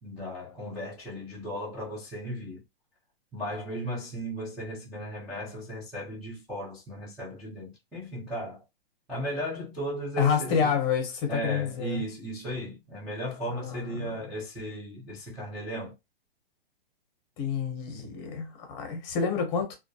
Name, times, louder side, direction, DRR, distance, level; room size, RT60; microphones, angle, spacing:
voice 1, 0.0-2.6 3.3-8.6 9.1-10.7 11.3-15.9, equal, ahead, 0.3 m, -36 dB
voice 2, 10.2-12.0 13.5-14.1 17.4-19.7, left 6 dB, 30° left, 0.8 m, -28 dB
2.3 x 2.1 x 2.7 m
hypercardioid pair, 150°, 30 cm